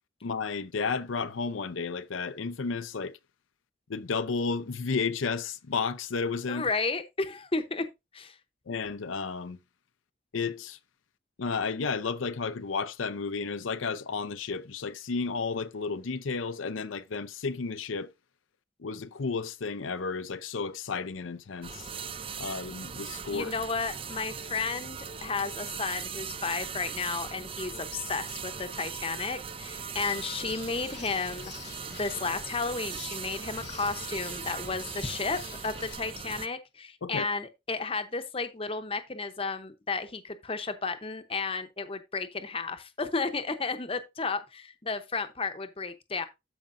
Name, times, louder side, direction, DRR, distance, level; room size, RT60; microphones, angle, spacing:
voice 1, 0.2-3.2 3.9-6.7 8.7-9.6 10.3-10.8 11.4-18.1 18.8-21.9 22.4-23.5 37.0-37.3, left 4 dB, 85° left, 0.6 m, -32 dB
voice 2, 6.5-7.8 8.1-8.4 23.3-46.2, left 4 dB, 30° left, 0.8 m, -33 dB
water on a stove, 21.6-36.5, right 6 dB, 30° right, 0.4 m, -39 dB
Bird, 29.9-35.9, left 6 dB, 55° left, 0.9 m, -47 dB
13.0 x 5.1 x 2.6 m
head